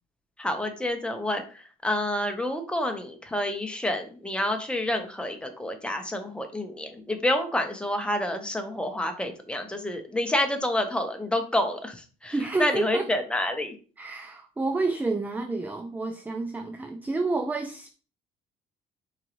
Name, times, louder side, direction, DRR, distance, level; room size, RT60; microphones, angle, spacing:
voice 1, 0.4-13.7, left 1 dB, 5° left, 5 dB, 0.9 m, -28 dB
voice 2, 12.3-13.1 14.0-17.9, right 3 dB, 10° right, 6 dB, 0.4 m, -29 dB
4.4 x 3.9 x 3.0 m, 0.38 s
cardioid pair, 110°, 17 cm